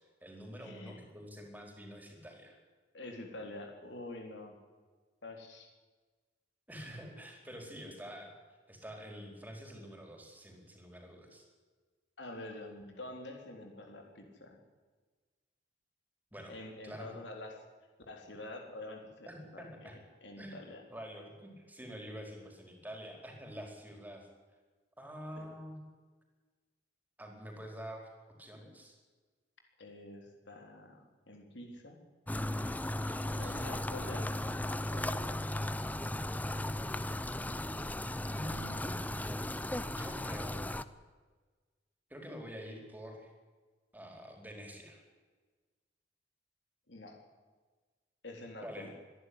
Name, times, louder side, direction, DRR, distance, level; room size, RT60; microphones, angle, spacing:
voice 1, 0.0-2.6 6.7-8.3 8.7-11.5 16.3-16.5 16.8-17.2 19.3-20.0 20.4-20.6 20.9-24.3 25.0-25.8 27.2-28.1 28.4-28.9 32.9-33.7 38.3-39.1 39.8-40.7 42.1-43.3 43.9-45.0 48.6-48.9, equal, 10° right, 2 dB, 4.6 m, -47 dB
voice 2, 0.6-1.0 2.9-4.6 5.2-5.7 12.2-14.6 16.5-17.6 18.1-20.8 25.4-25.5 29.8-31.0 31.3-32.0 33.4-34.5 34.9-35.7 46.9-47.2 48.2-48.9, left 2 dB, 80° left, 2 dB, 3.9 m, -47 dB
sound 1, 32.3-40.8, left 1 dB, 10° left, 0.7 m, -36 dB
25.5 x 11.0 x 9.8 m, 1.4 s
head